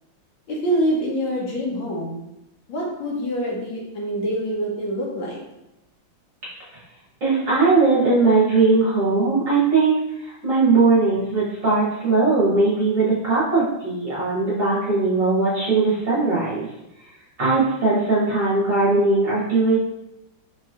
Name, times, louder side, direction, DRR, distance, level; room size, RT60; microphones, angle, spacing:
voice 1, 0.5-2.2 2.7-5.4, equal, 75° left, -2 dB, 1.6 m, -25 dB
voice 2, 7.2-9.9 10.2-16.7 17.4-19.8, right 3 dB, 50° right, -8 dB, 1.2 m, -19 dB
4.3 x 3.0 x 2.4 m, 0.91 s
omnidirectional pair, 2.2 m